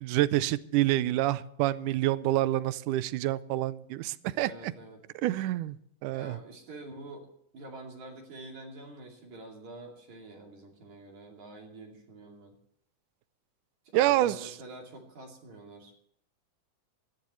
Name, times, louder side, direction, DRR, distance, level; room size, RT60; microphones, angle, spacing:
voice 1, 0.0-4.7 5.2-5.8 6.0-6.4 13.9-14.5, right 15 dB, 80° right, 16 dB, 2.1 m, -27 dB
voice 2, 4.2-5.0 6.1-7.3 7.5-12.5 13.9-15.9, right 2 dB, 60° right, 0 dB, 3.9 m, -47 dB
21.0 x 14.5 x 3.1 m, 0.70 s
omnidirectional pair, 3.8 m